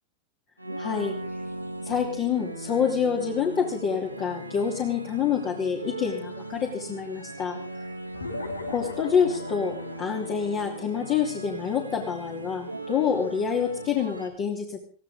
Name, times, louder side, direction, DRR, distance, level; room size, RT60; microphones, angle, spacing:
sound 1, 0.6-14.3, right 1 dB, 90° right, 2.4 m, -38 dB
voice 1, 0.8-1.1 1.8-7.6 8.7-14.8, left 7 dB, 35° left, 0 dB, 3.1 m, -27 dB
sound 2, 8.1-13.0, left 2 dB, 75° left, 2.5 m, -39 dB
22.0 x 16.0 x 3.7 m, 0.41 s
figure-of-eight pair, 90°, 0 cm